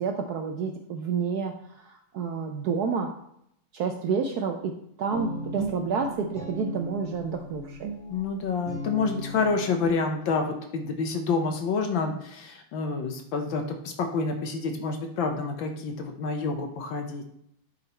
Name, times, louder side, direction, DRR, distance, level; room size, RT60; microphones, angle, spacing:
voice 1, 0.0-3.1 3.7-7.9, right 5 dB, 75° right, 4 dB, 0.9 m, -29 dB
Guitar, 5.1-10.3, right 2 dB, 40° right, 1.9 m, -37 dB
voice 2, 8.1-17.3, left 4 dB, 70° left, 4 dB, 1.5 m, -28 dB
9.7 x 4.1 x 4.3 m, 0.73 s
omnidirectional pair, 2.3 m